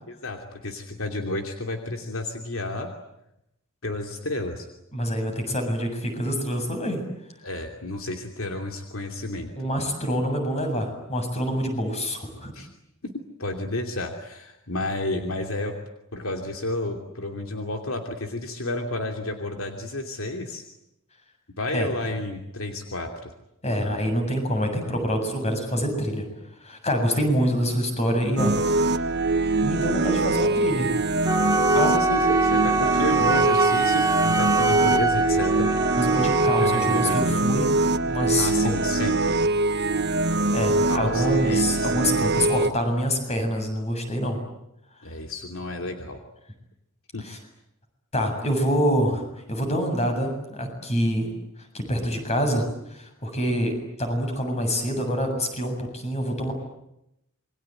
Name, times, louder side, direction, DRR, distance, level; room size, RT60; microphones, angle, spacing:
voice 1, 0.1-2.9 3.8-4.7 7.4-9.5 12.5-12.7 13.0-13.1 13.4-15.7 16.1-20.6 21.6-23.3 23.7-24.1 31.7-35.7 36.5-37.4 38.4-39.4 40.9-41.9 45.0-46.2 47.1-47.2, left 2 dB, 70° left, 4 dB, 2.9 m, -31 dB
voice 2, 4.9-7.0 9.5-12.5 21.7-21.9 23.6-26.2 26.6-28.9 29.6-30.9 31.7-31.9 36.0-37.7 38.0-38.7 40.5-44.4 47.2-47.4 48.1-49.2 49.5-51.3 51.7-53.7 54.0-56.5, equal, 30° left, 5 dB, 7.4 m, -26 dB
sound 1, 28.4-42.7, right 2 dB, 55° right, 1.4 m, -23 dB
Wind instrument woodwind instrument, 31.2-37.3, right 3 dB, 15° right, 1.1 m, -24 dB
28.0 x 23.0 x 9.2 m, 0.84 s
head